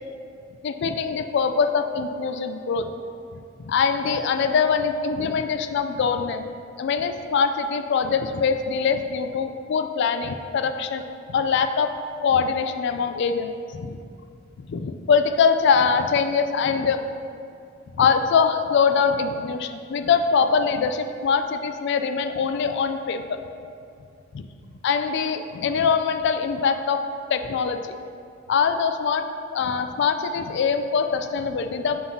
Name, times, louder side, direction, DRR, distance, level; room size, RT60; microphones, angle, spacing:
voice 1, 0.6-2.9 3.3-3.4 3.6-6.4 6.8-11.9 12.2-13.5 13.8-14.0 14.6-17.0 18.0-23.4 24.3-24.4 24.8-27.0 27.3-28.0 28.5-29.3 29.5-32.0, left 6 dB, 60° left, 8 dB, 0.3 m, -23 dB
7.6 x 5.6 x 2.7 m, 2.4 s
head